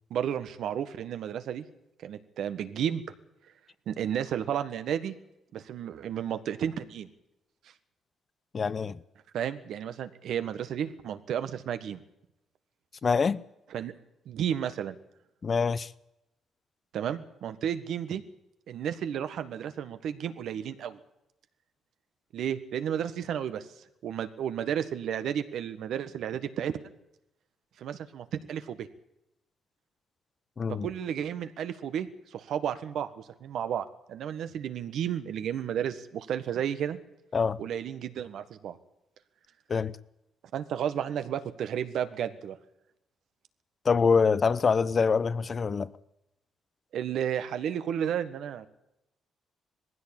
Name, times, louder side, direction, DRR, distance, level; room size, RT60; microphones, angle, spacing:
voice 1, 0.1-1.6 2.0-3.0 3.9-5.1 5.5-7.1 9.3-12.0 13.7-13.9 14.2-15.0 16.9-18.2 18.7-21.0 22.3-23.7 24.0-26.7 27.8-28.9 30.8-37.0 37.6-38.8 40.5-42.6 46.9-48.7, right 9 dB, 75° right, 1.6 m, -32 dB
voice 2, 8.5-9.0 13.0-13.4 15.4-15.9 30.6-30.9 37.3-37.6 39.7-40.0 43.8-45.9, left 5 dB, 40° left, 0.8 m, -25 dB
20.0 x 15.5 x 9.0 m
cardioid pair, 90°, 0 cm